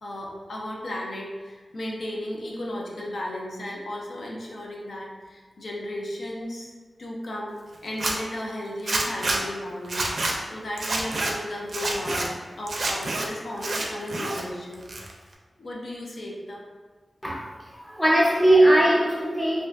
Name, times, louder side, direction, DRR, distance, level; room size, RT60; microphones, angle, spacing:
voice 1, 0.0-6.7 7.0-12.3 12.6-14.8 15.6-16.6, left 1 dB, 65° left, -2 dB, 0.4 m, -35 dB
Zipper (clothing), 7.9-8.1 8.9-9.4 9.8-10.3 10.8-11.3 11.7-12.3 12.7-13.2 13.6-14.4 14.7-15.3, right 2 dB, 60° right, 0.4 m, -27 dB
voice 2, 17.2-19.7, right 1 dB, ahead, -4 dB, 0.5 m, -20 dB
2.5 x 2.3 x 3.2 m, 1.4 s
wide cardioid pair, 115°, 0 cm